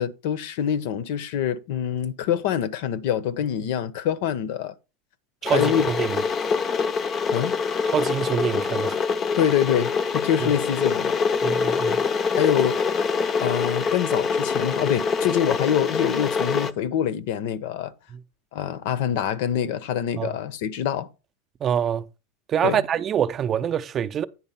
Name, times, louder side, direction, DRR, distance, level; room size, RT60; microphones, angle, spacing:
voice 1, 0.0-4.7 5.5-5.9 7.3-7.5 9.4-11.2 12.4-12.8 13.4-17.9 18.5-21.1 22.6-22.8, left 9 dB, 65° left, 0.8 m, -25 dB
Water / Boiling, 5.4-16.7, left 5 dB, 25° left, 0.5 m, -25 dB
voice 2, 5.4-6.2 7.8-9.0 11.4-12.0 20.2-20.3 21.6-22.0 22.5-24.2, right 9 dB, 25° right, 0.5 m, -25 dB
9.5 x 4.2 x 5.6 m
supercardioid pair, 150°, 0 cm